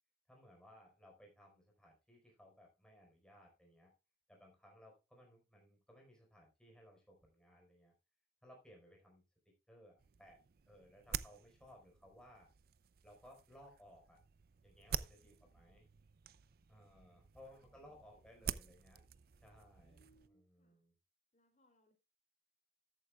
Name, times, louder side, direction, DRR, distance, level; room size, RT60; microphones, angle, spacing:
voice 1, 0.3-3.9 4.3-7.9 8.4-10.4 10.7-12.5 13.0-14.2 14.6-15.8 16.7-19.0 19.4-20.0 20.3-20.9, equal, 5° left, 0 dB, 4.5 m, -62 dB
Powerful golfball hits, 10.0-20.3, right 8 dB, 50° right, 0.4 m, -48 dB
voice 2, 15.2-15.6 16.8-17.1 17.5-18.8 19.8-20.8 21.3-21.9, equal, 40° left, 4 dB, 3.1 m, -75 dB
13.5 x 9.1 x 2.3 m, 0.28 s
head